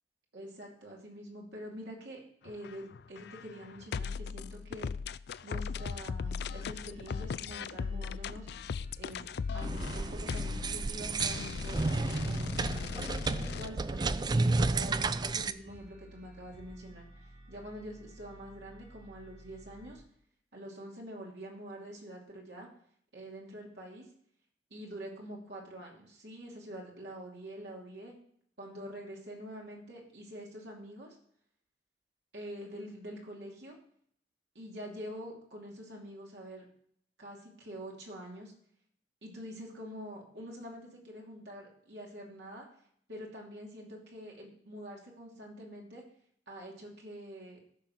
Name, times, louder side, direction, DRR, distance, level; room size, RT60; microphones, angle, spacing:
voice 1, 0.3-4.9 5.4-8.5 9.0-9.2 9.5-12.9 13.5-20.0 20.5-22.7 23.1-24.1 24.7-28.2 28.6-31.2 32.3-33.8 34.5-36.7 37.2-38.5 39.2-42.7 43.1-46.0 46.5-47.6, equal, 70° right, -2 dB, 2.8 m, -46 dB
sound 1, 2.5-13.7, left 5 dB, 65° left, 0.4 m, -38 dB
sound 2, 6.2-20.0, equal, 90° right, 6.3 m, -55 dB
sound 3, 9.6-15.5, right 3 dB, 25° right, 0.4 m, -32 dB
14.0 x 6.6 x 5.9 m, 0.64 s
head